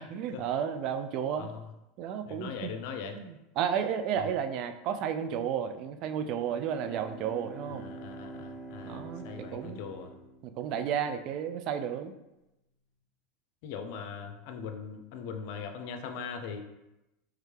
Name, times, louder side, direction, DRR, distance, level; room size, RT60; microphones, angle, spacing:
voice 1, 0.0-1.5 2.0-2.7 3.1-7.9 8.8-9.8 10.4-12.1, right 8 dB, 55° right, 8 dB, 0.3 m, -32 dB
voice 2, 2.3-3.2 4.2-4.3 7.7-10.1 10.7-10.9 13.6-16.6, left 6 dB, 65° left, 6 dB, 0.5 m, -40 dB
Bowed string instrument, 6.4-11.0, right 2 dB, 10° left, 0.8 m, -46 dB
3.4 x 3.2 x 3.2 m, 0.94 s
hypercardioid pair, 100°, 0 cm